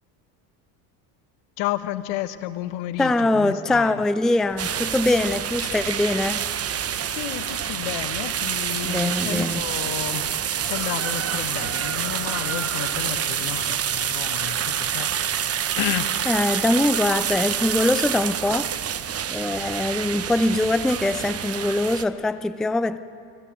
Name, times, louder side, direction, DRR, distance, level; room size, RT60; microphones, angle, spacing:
voice 1, 1.6-4.0 7.1-10.3 10.6-16.2, left 14 dB, 65° left, 1.3 m, -32 dB
voice 2, 3.0-6.4 8.8-9.6 16.3-18.7 19.3-23.0, left 2 dB, ahead, 0.5 m, -22 dB
sound 1, 4.5-21.3, left 3 dB, 25° left, 4.1 m, -47 dB
sound 2, 4.6-22.0, right 9 dB, 30° right, 1.0 m, -27 dB
25.5 x 15.5 x 8.7 m
hypercardioid pair, 80°, 47 cm